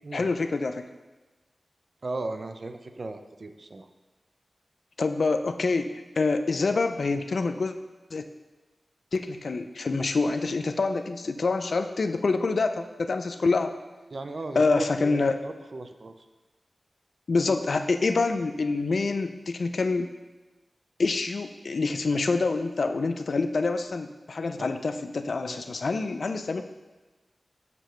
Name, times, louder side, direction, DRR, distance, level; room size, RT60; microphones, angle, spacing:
voice 1, 0.1-0.8 5.0-7.7 8.1-8.2 9.1-13.7 14.5-15.3 17.3-20.1 21.0-26.6, left 3 dB, 70° left, 8 dB, 0.4 m, -26 dB
voice 2, 2.0-3.9 14.1-16.3 24.6-24.7 25.5-25.8, right 2 dB, 55° right, 8 dB, 0.5 m, -37 dB
6.7 x 6.5 x 3.1 m, 1.2 s
wide cardioid pair, 90°, 0 cm